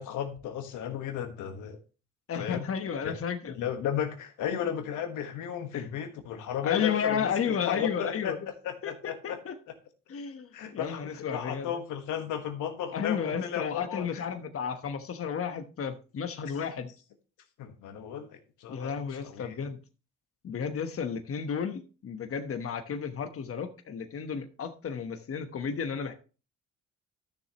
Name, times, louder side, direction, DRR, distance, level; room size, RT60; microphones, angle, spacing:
voice 1, 0.0-1.8 2.4-2.7 3.0-3.1 3.6-7.3 7.7-9.4 10.5-14.2 17.6-19.6, left 9 dB, 90° left, 1.4 m, -34 dB
voice 2, 2.3-3.5 5.7-5.9 6.6-8.4 8.8-9.5 10.1-11.7 12.9-16.9 18.7-19.8 20.4-26.1, left 7 dB, 50° left, 1.2 m, -32 dB
13.0 x 6.6 x 3.0 m
cardioid pair, 90°, 30 cm